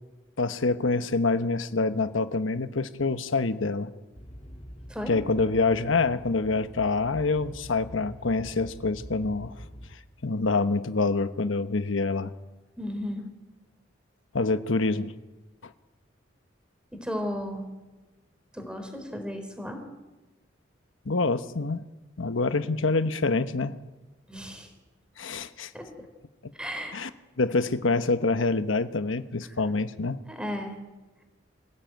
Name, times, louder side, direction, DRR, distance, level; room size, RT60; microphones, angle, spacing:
voice 1, 0.4-3.9 5.1-9.5 10.2-12.3 14.3-15.1 21.1-21.8 22.2-23.8 25.2-25.7 26.9-27.1 27.4-30.2, left 3 dB, 90° left, 11 dB, 1.1 m, -26 dB
sound 1, 4.1-9.9, equal, 35° left, 3.4 m, -45 dB
voice 2, 12.8-13.3 16.9-17.7 18.5-19.8 24.3-24.7 25.7-25.9 26.5-27.0 29.5-29.6 30.3-30.8, equal, 5° right, 5 dB, 3.8 m, -34 dB
25.5 x 16.0 x 9.2 m, 1.2 s
head